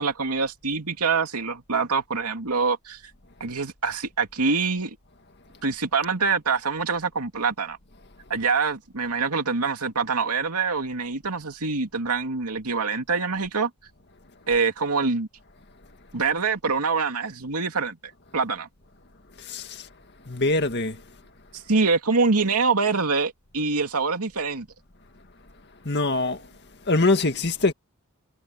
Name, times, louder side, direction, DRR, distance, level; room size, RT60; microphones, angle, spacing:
voice 1, 0.0-3.0 3.4-5.0 5.6-7.8 8.3-13.7 14.5-15.3 16.1-18.0 18.3-18.7 21.5-24.7, right 4 dB, 90° right, 2.6 m, -25 dB
voice 2, 19.4-19.9 20.3-21.0 25.8-26.5 26.9-27.7, left 2 dB, 50° left, 2.0 m, -23 dB
head